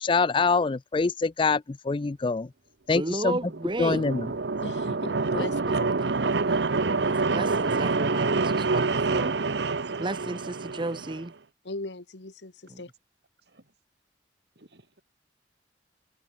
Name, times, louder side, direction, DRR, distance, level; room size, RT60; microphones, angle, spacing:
voice 1, 0.0-2.5 2.9-3.3 3.8-4.3, left 4 dB, 30° left, 0.4 m, -25 dB
voice 2, 2.9-4.0 5.4-5.5 6.5-6.7 7.0-9.3 10.0-11.3 12.7-12.8, right 2 dB, 30° right, 0.9 m, -33 dB
sound 1, 3.3-11.2, right 3 dB, 85° right, 0.9 m, -27 dB
voice 3, 4.6-5.8 6.9-7.0 11.6-12.9, left 2 dB, 90° left, 1.8 m, -38 dB
voice 4, 9.1-10.0 13.4-13.7 14.5-15.0, right 2 dB, 65° right, 4.4 m, -59 dB
head